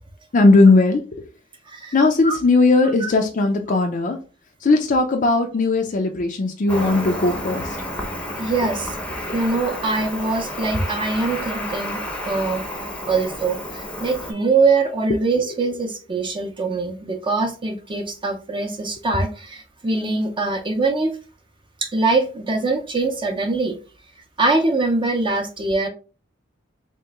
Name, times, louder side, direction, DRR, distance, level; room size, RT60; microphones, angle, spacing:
voice 1, 0.3-1.0 1.9-4.2 4.6-7.8, left 3 dB, 40° left, 0.4 m, -17 dB
Cricket, 6.7-14.3, left 1 dB, 5° left, 0.7 m, -30 dB
voice 2, 8.4-8.9 9.3-12.0 12.3-12.6 13.1-21.1 21.8-23.8 24.4-25.9, right 3 dB, 25° right, 0.6 m, -23 dB
3.2 x 2.9 x 3.4 m
head